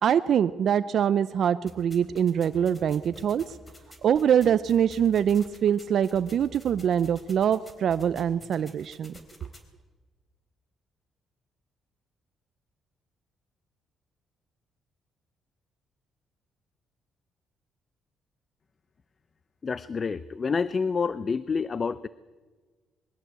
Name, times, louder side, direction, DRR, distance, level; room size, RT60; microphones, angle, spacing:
voice 1, 0.0-3.6 4.0-9.1, right 8 dB, 65° right, 13 dB, 0.6 m, -24 dB
sound 1, 1.7-9.6, left 1 dB, 20° left, 3.8 m, -50 dB
voice 2, 19.6-22.1, left 5 dB, 40° left, 17 dB, 0.6 m, -28 dB
22.5 x 15.5 x 8.2 m, 1.4 s
cardioid pair, 90°, 0 cm